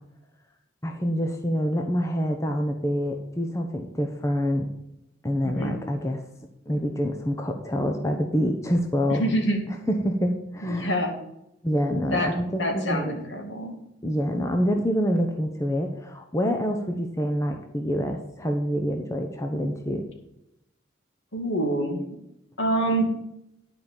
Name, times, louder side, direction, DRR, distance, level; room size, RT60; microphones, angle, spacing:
voice 1, 0.8-4.7 5.2-6.2 6.7-9.2 9.9-11.0 11.6-13.1 14.0-20.1, equal, 15° left, 3 dB, 0.8 m, -26 dB
voice 2, 5.4-5.8 9.1-9.6 10.6-11.2 12.1-12.3 12.6-13.8 21.3-22.1 22.6-23.1, right 1 dB, 65° left, 3 dB, 2.3 m, -26 dB
10.5 x 5.1 x 7.3 m, 0.84 s
head